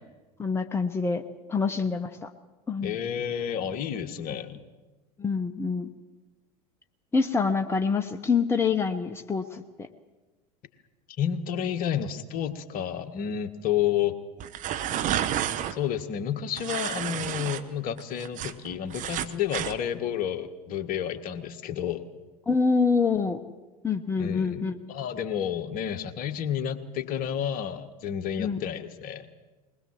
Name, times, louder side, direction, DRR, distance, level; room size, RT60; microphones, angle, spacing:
voice 1, 0.4-1.2 1.5-2.3 2.7-2.9 5.2-5.9 7.1-9.9 22.5-23.4 23.8-24.7 28.4-28.6, left 5 dB, 10° left, 6 dB, 1.1 m, -26 dB
voice 2, 2.8-4.6 11.2-14.1 15.7-22.0 24.2-29.3, left 9 dB, 45° left, 8 dB, 1.6 m, -30 dB
sound 1, 14.4-15.7 16.6-17.6 18.0-19.8, right 11 dB, 40° right, 1.2 m, -30 dB
21.5 x 20.0 x 7.7 m, 1.2 s
figure-of-eight pair, 80°, 20 cm